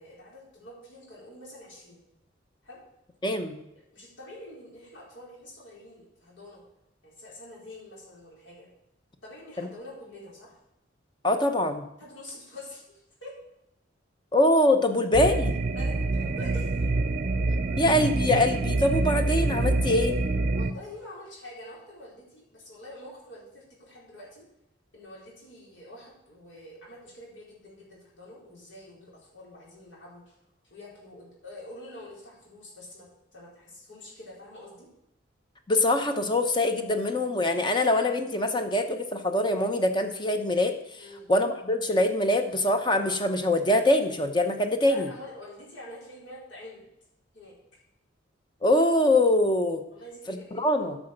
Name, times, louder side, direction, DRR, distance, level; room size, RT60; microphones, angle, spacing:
voice 1, 0.0-2.0 2.6-2.8 3.9-6.6 7.0-8.7 9.2-10.6 12.0-13.3 15.7-17.0 17.7-17.8 20.5-24.5 24.9-30.4 30.6-33.1 33.3-34.9 41.0-41.3 44.9-46.9 47.3-47.5 49.9-50.9, left 1 dB, 75° left, -5 dB, 4.4 m, -46 dB
voice 2, 3.2-3.6 9.6-9.7 11.2-11.8 14.3-15.6 17.8-20.2 35.7-45.1 48.6-49.8 50.3-51.0, left 1 dB, 25° left, 6 dB, 0.8 m, -24 dB
sound 1, 15.1-20.7, right 2 dB, 45° right, 0.5 m, -26 dB
10.0 x 6.1 x 6.6 m, 0.85 s
head